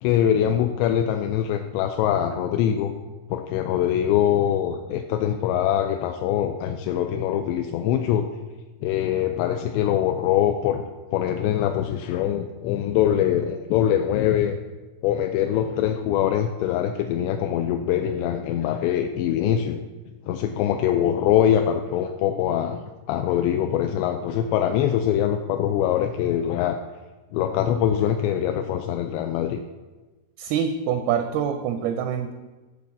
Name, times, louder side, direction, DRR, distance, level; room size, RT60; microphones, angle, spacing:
voice 1, 0.0-2.9 3.3-8.3 8.8-10.8 11.1-14.6 15.0-19.8 20.3-26.8 27.3-29.6, left 10 dB, 90° left, 5 dB, 2.8 m, -23 dB
voice 2, 30.4-32.3, right 8 dB, 80° right, 7 dB, 2.2 m, -25 dB
12.0 x 4.1 x 7.2 m, 1.2 s
omnidirectional pair, 4.9 m